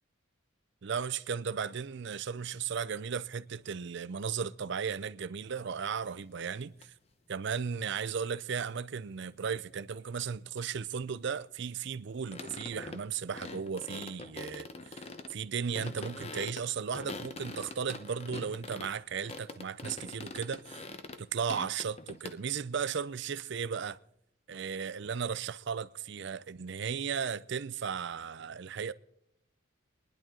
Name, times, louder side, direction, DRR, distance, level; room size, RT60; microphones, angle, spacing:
voice 1, 0.8-6.9 7.3-20.8 21.2-24.0 24.5-28.9, right 6 dB, 60° right, 0.5 m, -35 dB
sound 1, 5.5-5.6 6.8-6.9 12.3-13.1 13.3-15.4 15.7-18.9 19.2-21.2 21.5-22.4, left 3 dB, 30° left, 0.8 m, -44 dB
26.5 x 10.5 x 3.8 m
head